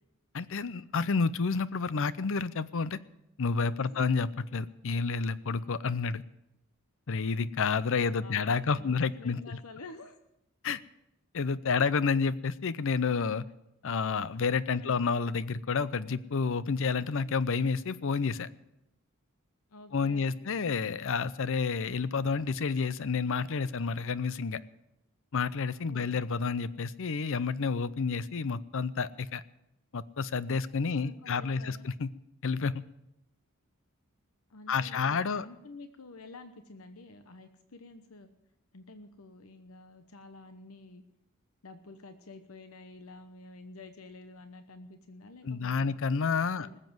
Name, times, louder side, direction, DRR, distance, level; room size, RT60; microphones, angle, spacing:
voice 1, 0.3-3.0 3.4-6.2 7.1-9.6 10.6-10.8 11.3-13.4 13.8-18.5 19.9-24.6 25.3-29.4 29.9-32.1 32.4-32.8 34.7-35.5 45.4-46.7, left 5 dB, 65° left, 17 dB, 0.6 m, -30 dB
voice 2, 8.0-10.2 14.8-15.0 19.7-20.5 25.9-26.2 31.0-31.9 34.5-38.3 38.7-41.0 41.6-46.0 46.6-46.8, left 2 dB, 80° left, 8 dB, 1.0 m, -50 dB
20.0 x 7.6 x 7.7 m, 0.85 s
head